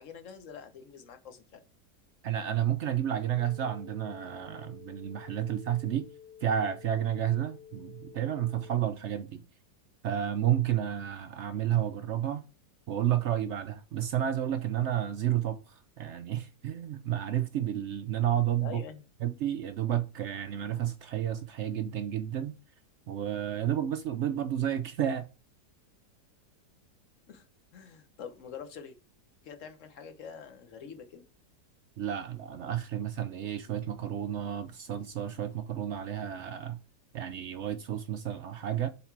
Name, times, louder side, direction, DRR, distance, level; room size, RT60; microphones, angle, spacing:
voice 1, 0.0-1.6 8.5-8.7 18.6-19.0 27.3-27.4 27.7-29.0 29.4-31.2, left 7 dB, 55° left, 1.2 m, -45 dB
voice 2, 2.2-6.1 6.4-9.4 10.0-12.4 12.9-18.8 19.2-22.6 23.1-25.3 32.0-36.8 37.1-38.9, right 10 dB, 70° right, 0.6 m, -31 dB
sound 1, 3.4-8.8, left 8 dB, 80° left, 1.6 m, -52 dB
7.4 x 3.9 x 4.5 m
omnidirectional pair, 1.7 m